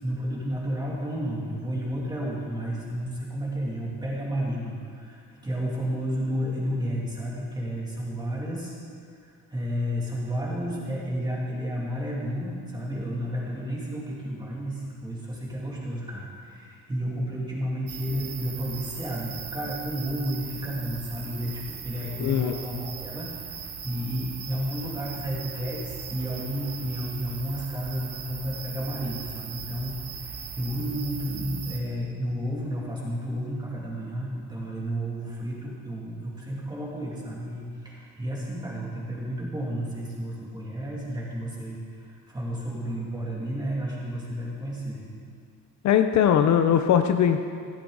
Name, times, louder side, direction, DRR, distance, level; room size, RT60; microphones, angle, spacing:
voice 1, 0.0-8.7 9.2-45.0, equal, 15° right, -5 dB, 2.6 m, -32 dB
sound 1, 17.9-31.8, right 7 dB, 70° right, 1.7 m, -39 dB
voice 2, 22.2-22.5 45.8-47.4, left 9 dB, 60° left, 7 dB, 0.6 m, -20 dB
15.0 x 13.0 x 4.0 m, 2.3 s
cardioid pair, 170°, 33 cm